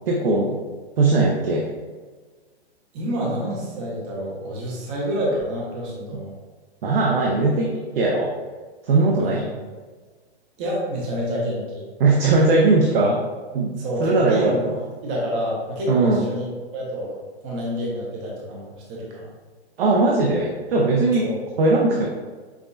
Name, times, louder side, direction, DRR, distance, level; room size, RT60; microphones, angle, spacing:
voice 1, 0.1-0.6 1.0-1.6 6.8-8.3 8.9-9.5 12.0-13.2 13.5-14.7 15.9-16.3 19.8-21.3 21.6-22.1, right 3 dB, 60° right, -2 dB, 0.7 m, -19 dB
voice 2, 2.9-6.3 9.2-9.4 10.6-11.8 13.8-14.6 15.0-16.5 16.7-17.2 17.4-19.3 21.2-21.3, equal, 15° right, -4 dB, 0.5 m, -28 dB
5.7 x 2.2 x 2.6 m, 1.4 s
hypercardioid pair, 160°, 33 cm